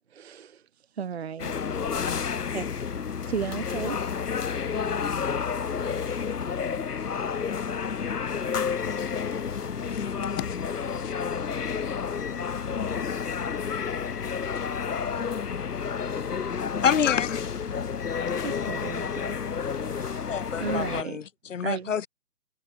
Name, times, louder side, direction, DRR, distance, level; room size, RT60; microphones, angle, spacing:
voice 1, 0.1-0.6 1.0-1.5 2.5-2.6 3.3-4.0 18.4-19.4 19.7-20.2 20.6-21.2 21.6-21.9, right 7 dB, 45° right, 0.9 m, -34 dB
sound 1, 1.4-21.0, left 6 dB, 75° left, 1.2 m, -30 dB
voice 2, 2.0-2.6 17.0-17.4 18.2-18.5, left 25 dB, 15° left, 1.7 m, -44 dB
voice 3, 16.8-17.3 20.3-22.1, left 7 dB, 55° left, 0.9 m, -27 dB
figure-of-eight pair, 150°, 47 cm